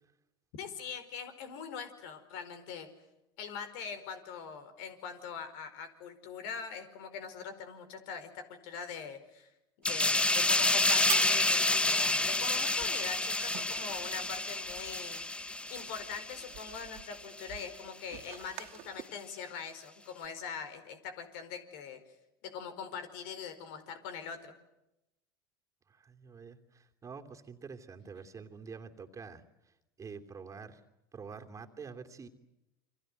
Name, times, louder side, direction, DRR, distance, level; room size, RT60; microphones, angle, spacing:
voice 1, 0.5-2.9 3.4-9.5 9.8-15.2 15.7-22.0 22.4-24.5, left 6 dB, 65° left, 9 dB, 4.7 m, -42 dB
sound 1, 9.8-17.0 17.4-17.6, left 2 dB, 10° left, 0.9 m, -29 dB
sound 2, 9.8-19.0, right 17 dB, 60° right, 2.5 m, -46 dB
voice 2, 25.9-29.4 30.0-30.8 31.1-32.3, right 5 dB, 25° right, 4 dB, 2.9 m, -47 dB
28.5 x 24.5 x 8.0 m, 0.91 s
hypercardioid pair, 90°, 12 cm